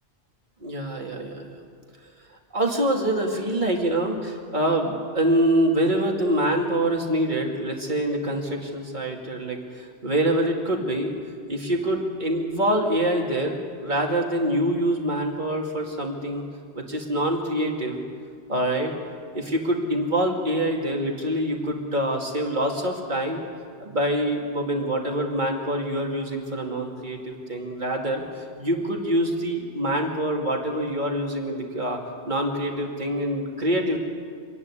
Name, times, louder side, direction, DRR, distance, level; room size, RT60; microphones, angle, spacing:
voice 1, 0.6-1.4 2.5-11.1 11.5-16.4 16.7-18.0 18.5-18.9 19.3-23.4 23.8-28.2 28.6-32.0 32.3-34.0, right 1 dB, 45° right, 0 dB, 2.6 m, -25 dB
26.5 x 11.0 x 9.8 m, 2.1 s
omnidirectional pair, 1.1 m